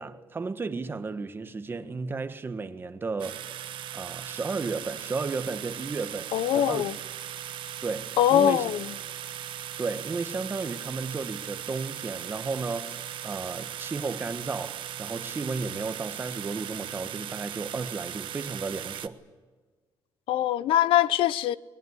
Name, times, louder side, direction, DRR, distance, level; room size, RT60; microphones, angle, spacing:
voice 1, 0.0-3.4 3.9-6.9 7.8-8.6 9.8-19.2, right 4 dB, 25° right, 1.5 m, -33 dB
sound 1, 3.2-19.1, right 11 dB, 70° right, 1.3 m, -38 dB
voice 2, 6.3-6.9 8.2-8.9 20.3-21.6, left 11 dB, 80° left, 0.8 m, -23 dB
22.0 x 21.0 x 9.7 m
cardioid pair, 125°, 9 cm